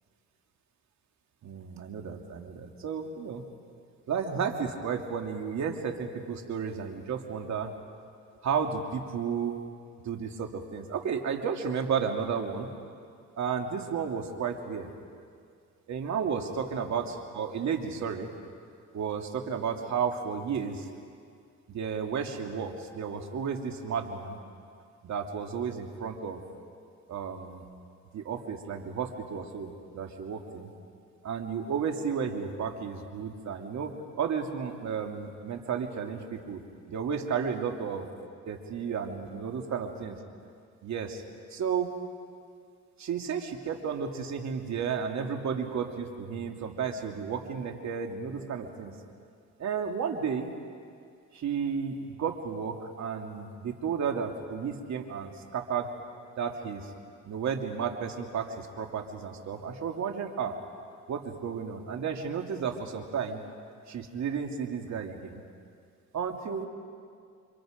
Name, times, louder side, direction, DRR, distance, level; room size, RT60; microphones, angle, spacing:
voice 1, 1.4-3.4 4.1-7.7 8.4-9.6 10.0-12.7 13.4-14.9 15.9-18.3 18.9-20.9 21.7-24.4 25.0-26.4 27.1-27.6 28.1-30.7 31.2-33.9 34.2-36.6 36.9-38.1 38.5-40.2 40.8-41.2 41.5-41.9 43.0-48.9 49.6-50.5 51.3-55.9 56.4-56.8 57.2-60.5 61.1-63.4 63.9-65.4 66.1-66.7, right 6 dB, 65° right, 3 dB, 2.7 m, -33 dB
30.0 x 25.5 x 5.2 m, 2.2 s
cardioid pair, 90°, 30 cm